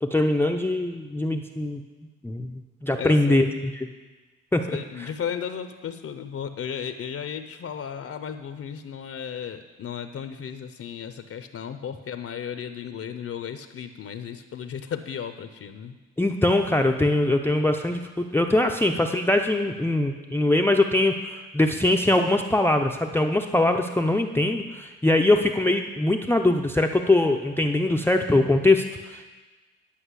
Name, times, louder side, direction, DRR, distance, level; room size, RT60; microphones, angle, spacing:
voice 1, 0.0-1.8 2.2-3.9 4.5-5.1 16.2-29.2, left 2 dB, 10° left, 4 dB, 0.5 m, -22 dB
voice 2, 3.0-3.6 4.7-16.0, left 8 dB, 50° left, 9 dB, 0.7 m, -35 dB
10.0 x 5.3 x 8.1 m, 1.3 s
cardioid pair, 90°, 30 cm